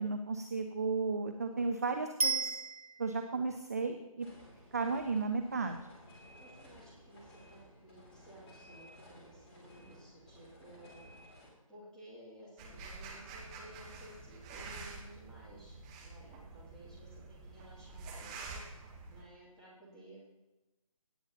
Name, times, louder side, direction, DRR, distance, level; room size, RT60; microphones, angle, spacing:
voice 1, 0.0-2.5 3.0-4.3 4.7-5.8, right 4 dB, 25° right, 6 dB, 0.4 m, -34 dB
Bicycle bell, 2.2-3.3 12.4-12.5, right 4 dB, 85° right, 0.8 m, -34 dB
sound 1, 4.2-11.5, equal, 20° left, 2.7 m, -56 dB
voice 2, 6.4-11.3 11.7-15.8 16.0-20.3, right 1 dB, 5° left, -9 dB, 2.4 m, -56 dB
sound 2, 12.6-19.2, right 3 dB, 10° right, 1.0 m, -48 dB
17.5 x 8.6 x 2.8 m, 1.0 s
figure-of-eight pair, 150°, 18 cm